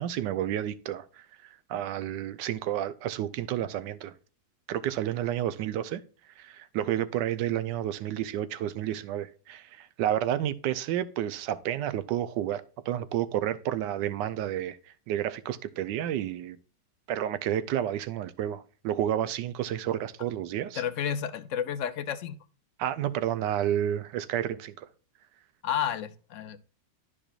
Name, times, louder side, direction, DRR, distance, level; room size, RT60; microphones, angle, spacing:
voice 1, 0.0-4.1 4.7-6.0 6.4-14.8 15.1-16.6 17.1-20.8 22.8-24.8, right 11 dB, 80° right, 1.3 m, -30 dB
voice 2, 20.8-22.4 25.6-26.6, left 9 dB, 70° left, 0.7 m, -31 dB
11.5 x 5.0 x 2.4 m
omnidirectional pair, 2.0 m